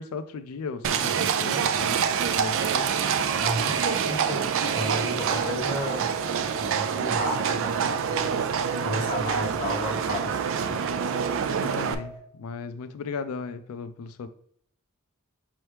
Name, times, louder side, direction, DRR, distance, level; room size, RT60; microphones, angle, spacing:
voice 1, 0.0-2.9 11.6-14.3, left 5 dB, 80° left, 11 dB, 0.4 m, -36 dB
Livestock farm animals working animals, 0.8-11.9, right 7 dB, 65° right, 0.4 m, -26 dB
sound 1, 1.7-12.2, right 1 dB, 10° right, 1.5 m, -43 dB
voice 2, 3.4-6.0 6.5-8.3 8.8-10.9, equal, 25° left, -3 dB, 1.4 m, -32 dB
5.4 x 3.0 x 3.3 m, 0.65 s
head